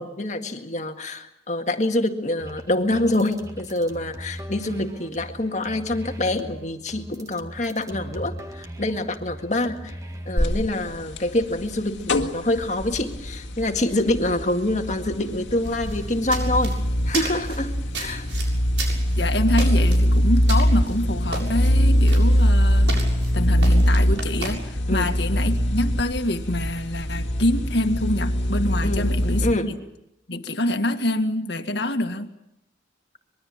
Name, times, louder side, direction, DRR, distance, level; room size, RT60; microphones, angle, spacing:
voice 1, 0.0-9.9 10.3-16.8 17.1-18.3 24.9-25.1 28.8-29.1 29.4-29.7, left 1 dB, 40° left, 5 dB, 1.9 m, -26 dB
sound 1, 2.4-10.4, right 1 dB, 20° right, 1.9 m, -39 dB
sound 2, 10.4-29.5, equal, 85° left, 2.1 m, -22 dB
sound 3, 15.6-24.5, right 3 dB, 75° right, 7.0 m, -35 dB
voice 2, 19.2-22.9 23.3-29.8 30.3-32.3, left 1 dB, 65° left, 7 dB, 2.0 m, -26 dB
25.0 x 22.0 x 7.4 m, 0.83 s
head